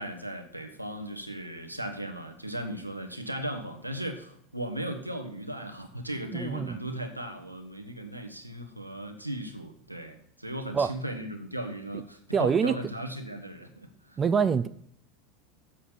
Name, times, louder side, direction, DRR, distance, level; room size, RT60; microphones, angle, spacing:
voice 1, 0.0-14.2, right 1 dB, 90° right, 5 dB, 1.1 m, -37 dB
voice 2, 6.3-6.8 10.7-10.9 12.3-12.7 14.2-14.7, right 6 dB, 25° right, 13 dB, 0.4 m, -25 dB
7.3 x 6.8 x 7.1 m, 0.67 s
figure-of-eight pair, 80°, 0 cm